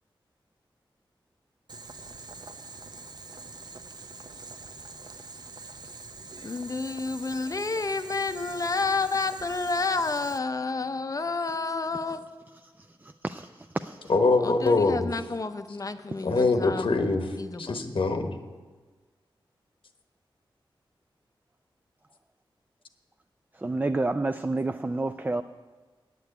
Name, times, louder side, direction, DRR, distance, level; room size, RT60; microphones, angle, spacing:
Boiling, 1.7-10.4, right 3 dB, 50° right, 0.7 m, -44 dB
voice 1, 6.4-12.2 14.4-16.9 17.4-17.7, left 3 dB, 40° left, 10 dB, 0.6 m, -30 dB
voice 2, 13.0-13.5 13.7-14.1 23.6-25.4, right 2 dB, 20° right, 9 dB, 0.3 m, -29 dB
voice 3, 14.1-15.1 16.2-17.3 17.6-18.4, left 3 dB, 75° left, 6 dB, 1.0 m, -23 dB
9.2 x 6.8 x 8.4 m, 1.4 s
wide cardioid pair, 95°, 9 cm